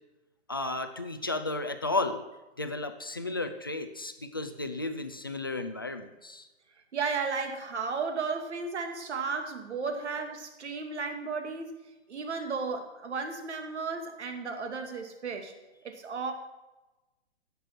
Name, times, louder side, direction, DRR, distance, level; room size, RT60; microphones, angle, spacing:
voice 1, 0.5-2.2 2.6-6.5, left 2 dB, 20° left, 8 dB, 0.3 m, -33 dB
voice 2, 6.9-11.7 12.1-15.5 15.8-16.3, right 4 dB, 80° right, 5 dB, 2.3 m, -34 dB
16.0 x 6.8 x 5.9 m, 1.1 s
hypercardioid pair, 170°, 33 cm